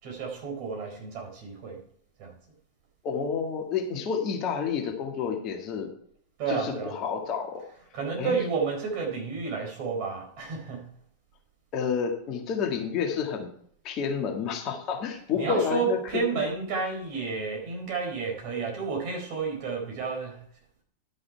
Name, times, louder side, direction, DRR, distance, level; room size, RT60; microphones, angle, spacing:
voice 1, 0.0-1.8 2.2-2.3 6.4-7.0 7.9-10.9 15.3-20.4, right 5 dB, 45° right, 1 dB, 4.1 m, -31 dB
voice 2, 3.0-5.9 6.5-7.6 8.2-8.4 11.7-13.5 13.8-16.4, left 6 dB, 35° left, 2 dB, 1.8 m, -30 dB
11.0 x 6.2 x 4.6 m, 0.62 s
figure-of-eight pair, 90°, 0 cm